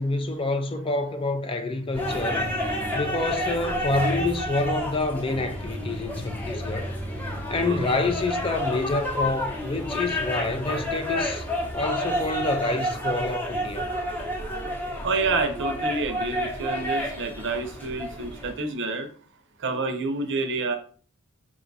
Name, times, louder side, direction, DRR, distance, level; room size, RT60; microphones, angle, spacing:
voice 1, 0.0-2.5 2.9-6.9 7.5-11.5 11.7-13.9, left 2 dB, 25° left, 0.4 m, -27 dB
sound 1, 1.9-18.5, equal, 10° left, 0.8 m, -30 dB
voice 2, 7.5-7.9 15.0-19.1 19.6-20.8, right 3 dB, 55° right, 0.6 m, -28 dB
4.9 x 2.3 x 3.9 m
head